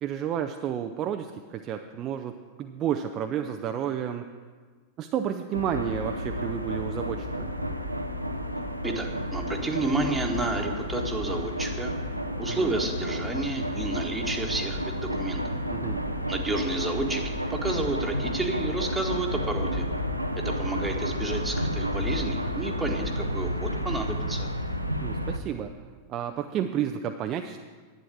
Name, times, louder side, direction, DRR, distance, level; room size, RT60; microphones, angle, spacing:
voice 1, 0.0-4.3 5.0-7.6 12.5-12.7 15.7-16.0 25.0-25.7 26.1-27.6, right 9 dB, 35° right, 6 dB, 0.5 m, -31 dB
sound 1, 5.5-25.4, equal, 90° right, 0.6 m, -31 dB
voice 2, 8.8-11.9 12.4-15.4 16.3-19.8 20.4-24.5, right 2 dB, 10° right, 3 dB, 1.4 m, -31 dB
11.0 x 9.1 x 6.2 m, 1.5 s
figure-of-eight pair, 90°, 0 cm